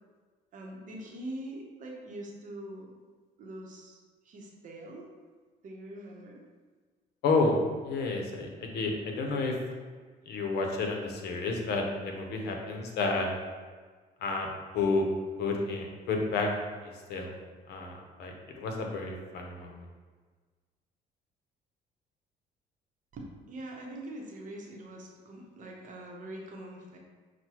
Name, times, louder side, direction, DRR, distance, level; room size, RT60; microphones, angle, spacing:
voice 1, 0.5-2.9 3.4-4.0 4.2-5.1 5.6-6.4 23.1-27.0, right 1 dB, 50° right, 0 dB, 0.8 m, -43 dB
voice 2, 7.2-7.6 7.8-9.5 10.3-13.3 14.2-14.5 14.7-15.1 15.4-16.5 16.8-17.3 17.7-19.8, left 3 dB, 75° left, 2 dB, 0.7 m, -30 dB
6.1 x 2.2 x 2.9 m, 1.4 s
cardioid pair, 110°, 17 cm